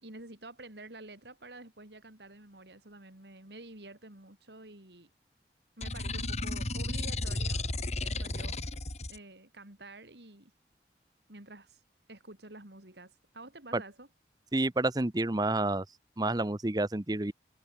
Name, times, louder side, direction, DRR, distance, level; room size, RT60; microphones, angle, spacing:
voice 1, 0.0-5.1 5.8-7.7 8.0-8.6 9.1-10.5 11.3-11.8 12.1-14.1, right 2 dB, 75° right, 4.3 m, -49 dB
sound 1, 5.8-9.2, left 2 dB, 40° left, 2.7 m, -33 dB
voice 2, 14.5-15.8 16.2-17.3, right 2 dB, 20° right, 0.8 m, -29 dB
head